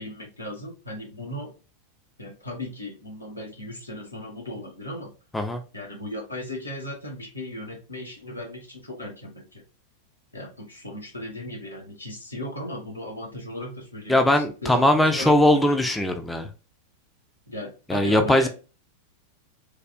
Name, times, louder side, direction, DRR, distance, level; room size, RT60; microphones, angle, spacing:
voice 1, 0.0-1.5 2.2-5.1 5.7-9.6 10.3-15.3 15.7-15.9 17.5-18.5, left 1 dB, 85° left, 0.9 m, -36 dB
voice 2, 14.1-16.5 17.9-18.5, left 1 dB, 5° left, 0.3 m, -20 dB
3.3 x 2.3 x 2.3 m
figure-of-eight pair, 90°, 0 cm